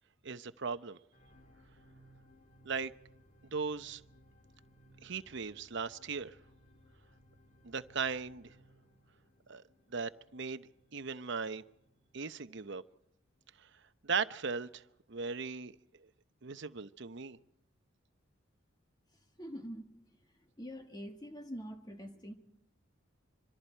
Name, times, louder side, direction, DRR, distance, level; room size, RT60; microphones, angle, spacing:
voice 1, 0.2-1.0 2.6-2.9 3.5-4.0 5.0-6.4 7.6-8.5 9.5-9.6 9.9-11.6 12.1-12.8 14.0-14.8 15.1-15.8 16.4-17.4, right 5 dB, 60° right, 12 dB, 0.8 m, -38 dB
sound 1, 1.1-13.5 14.1-14.2, equal, 40° left, 2.9 m, -64 dB
voice 2, 19.4-19.9 20.6-22.3, equal, 20° left, 5 dB, 1.6 m, -44 dB
26.0 x 24.5 x 4.5 m, 0.74 s
head